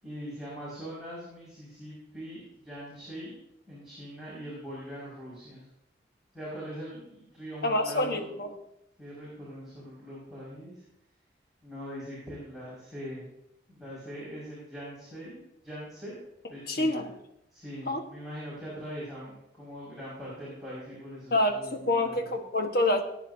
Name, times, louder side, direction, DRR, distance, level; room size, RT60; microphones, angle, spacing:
voice 1, 0.0-3.4 3.7-5.6 6.3-8.3 9.0-10.8 11.6-13.3 13.7-16.2 16.5-17.1 17.5-22.3, equal, ahead, -10 dB, 5.6 m, -42 dB
voice 2, 7.6-8.5 16.7-17.1 17.9-18.0 21.3-23.0, left 1 dB, 55° left, 4 dB, 1.4 m, -27 dB
19.5 x 9.5 x 2.8 m, 0.81 s
head